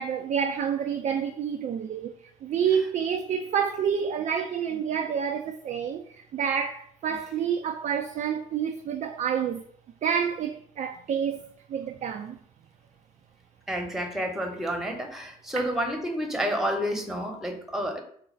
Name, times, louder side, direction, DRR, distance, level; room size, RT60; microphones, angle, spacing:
voice 1, 0.0-2.1 2.4-9.6 10.0-12.4 15.6-15.7, right 7 dB, 40° right, 0.4 m, -28 dB
voice 2, 13.7-18.0, equal, ahead, 1.0 m, -30 dB
3.9 x 2.3 x 4.4 m
figure-of-eight pair, 45°, 19 cm